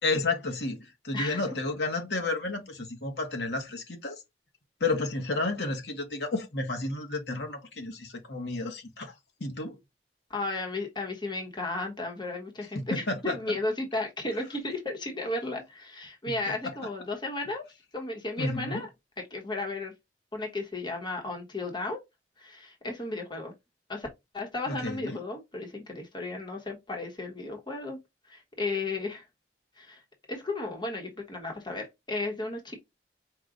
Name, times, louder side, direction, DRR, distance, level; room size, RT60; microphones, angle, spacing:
voice 1, 0.0-4.2 4.8-9.1 9.4-9.8 12.7-13.4 18.4-18.8 24.7-25.2, left 2 dB, 75° left, 1.2 m, -31 dB
voice 2, 10.3-17.6 17.9-18.9 19.2-19.9 20.3-22.0 22.4-23.5 23.9-24.1 24.3-28.0 28.3-29.2 29.8-30.0 30.3-32.8, left 2 dB, 25° left, 1.1 m, -34 dB
4.8 x 2.4 x 3.8 m
head